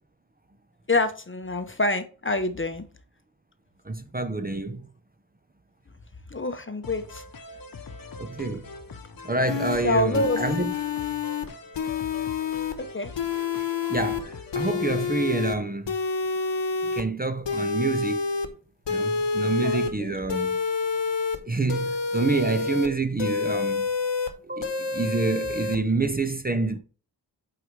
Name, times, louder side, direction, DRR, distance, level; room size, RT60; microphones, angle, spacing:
voice 1, 0.9-2.8 6.3-7.2 9.8-10.4 12.8-13.1 19.6-20.2, left 2 dB, 30° left, 0.8 m, -26 dB
voice 2, 3.9-4.8 8.2-8.7 9.2-10.7 13.9-16.0 16.9-18.2 18.9-20.6 21.5-23.9 24.5-26.8, right 3 dB, 20° right, 0.7 m, -27 dB
sound 1, 6.8-15.1, left 4 dB, 55° left, 0.9 m, -42 dB
sound 2, 9.5-9.8 10.1-11.5 11.7-12.7 13.1-14.2 14.5-15.6 15.9-17.0 17.4-18.5 18.9-19.9 20.3-21.4 21.7-22.9 23.2-24.3 24.6-25.8, left 5 dB, 85° left, 1.1 m, -28 dB
8.3 x 4.8 x 3.2 m
wide cardioid pair, 105°, 43 cm